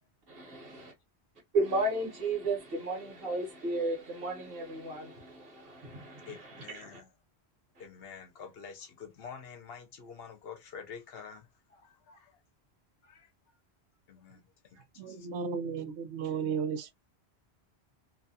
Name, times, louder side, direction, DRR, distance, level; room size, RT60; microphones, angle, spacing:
voice 1, 0.3-0.9 1.5-7.0 7.7-7.9, right 2 dB, 60° right, 1.2 m, -34 dB
voice 2, 6.3-7.1 7.8-12.4 13.0-13.3 14.1-15.3, left 6 dB, 65° left, 0.8 m, -48 dB
voice 3, 15.0-17.0, right 6 dB, 85° right, 0.9 m, -34 dB
2.7 x 2.2 x 2.6 m
omnidirectional pair, 1.1 m